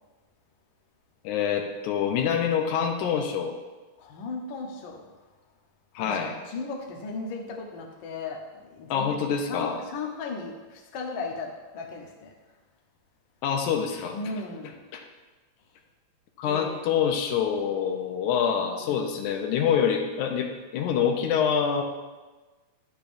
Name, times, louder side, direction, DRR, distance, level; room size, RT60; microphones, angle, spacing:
voice 1, 1.2-3.5 6.0-6.3 8.9-9.8 13.4-14.2 14.9-15.0 16.4-21.8, left 7 dB, 80° left, 4 dB, 2.2 m, -26 dB
voice 2, 4.0-5.1 6.0-9.2 9.5-12.3 14.1-14.7 16.4-16.9 18.9-19.0, left 3 dB, 65° left, 0 dB, 1.2 m, -36 dB
10.5 x 6.9 x 2.6 m, 1.2 s
omnidirectional pair, 3.5 m